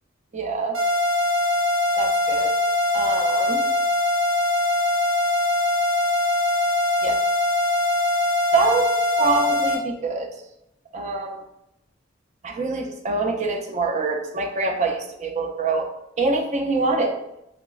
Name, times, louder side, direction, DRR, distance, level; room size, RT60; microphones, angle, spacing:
voice 1, 0.3-0.8 2.0-2.5 2.9-3.6 7.0-7.2 8.5-8.9 9.2-10.3 10.9-11.4 12.4-15.9 16.2-17.4, right 3 dB, 35° right, 3 dB, 0.4 m, -25 dB
sound 1, 0.7-9.8, left 2 dB, 90° right, 0.7 m, -22 dB
5.0 x 2.1 x 2.3 m, 0.82 s
head